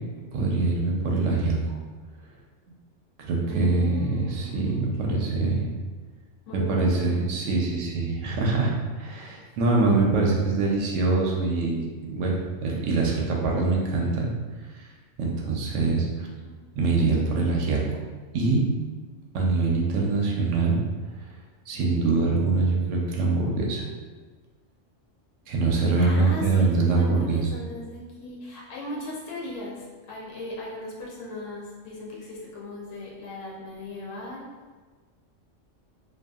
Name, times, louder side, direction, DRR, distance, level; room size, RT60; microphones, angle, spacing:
voice 1, 0.3-1.6 3.2-5.7 6.5-11.8 12.1-14.3 14.8-14.9 15.2-16.3 16.7-17.8 18.3-18.7 19.3-20.8 21.7-23.8 25.5-27.5, right 3 dB, 80° right, -2 dB, 0.9 m, -24 dB
voice 2, 3.5-5.4 6.5-7.2 16.4-16.6 26.0-34.5, left 2 dB, 90° left, -4 dB, 1.0 m, -37 dB
2.6 x 2.5 x 2.3 m, 1.4 s
omnidirectional pair, 1.3 m